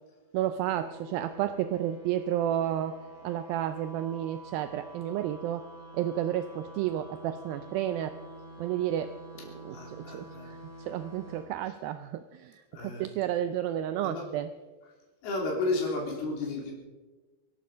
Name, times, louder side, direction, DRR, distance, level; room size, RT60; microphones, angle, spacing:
voice 1, 0.3-2.9 3.2-5.6 5.9-8.1 8.6-9.1 9.6-14.5, right 11 dB, 80° right, 10 dB, 2.3 m, -31 dB
sound 1, 0.6-11.4, right 1 dB, 20° right, 4.0 m, -48 dB
voice 2, 9.7-10.5 12.7-13.0 14.0-14.2 15.2-16.7, left 3 dB, 80° left, -1 dB, 5.1 m, -32 dB
24.0 x 11.5 x 5.1 m, 1.2 s
omnidirectional pair, 4.5 m